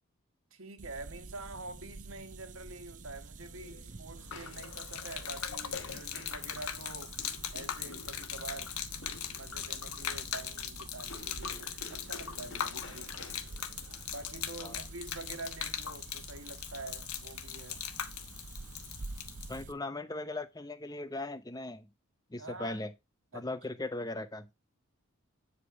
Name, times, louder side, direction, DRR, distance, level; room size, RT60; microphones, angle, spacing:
voice 1, 0.5-7.2 7.5-8.7 9.3-13.1 14.1-17.9 22.4-22.8 23.3-23.5, right 2 dB, 65° right, 1.4 m, -46 dB
sound 1, 0.8-19.7, right 3 dB, 35° right, 0.6 m, -49 dB
sound 2, 3.1-15.6, left 3 dB, 55° left, 1.5 m, -53 dB
Gurgling / Liquid, 4.2-19.6, left 9 dB, 75° left, 1.0 m, -40 dB
voice 2, 19.5-21.9 22.3-22.9 23.3-24.5, left 2 dB, 15° left, 0.6 m, -38 dB
8.5 x 5.0 x 4.6 m
head